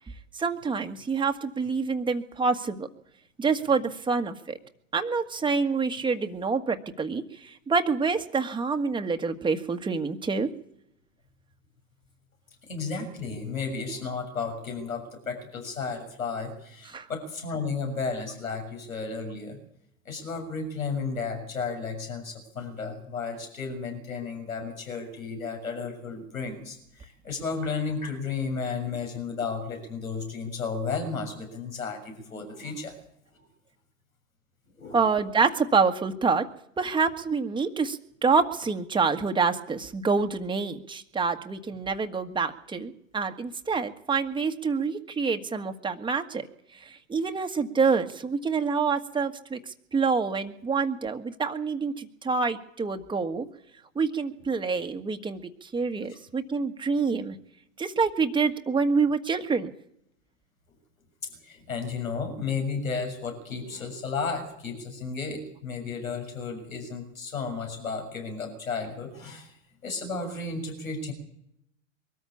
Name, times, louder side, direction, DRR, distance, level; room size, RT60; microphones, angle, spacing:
voice 1, 0.3-2.9 3.4-4.6 4.9-10.5 16.9-17.1 34.9-36.4 36.8-46.5 46.7-53.4 53.9-57.4 57.8-59.7, right 5 dB, 10° right, 6 dB, 1.6 m, -27 dB
voice 2, 12.6-19.6 20.0-32.9 33.3-33.5 34.8-35.0 61.2-69.6 69.8-71.1, left 4 dB, 85° left, 3 dB, 6.7 m, -33 dB
23.0 x 14.0 x 8.5 m, 0.75 s
hypercardioid pair, 100°, 40 cm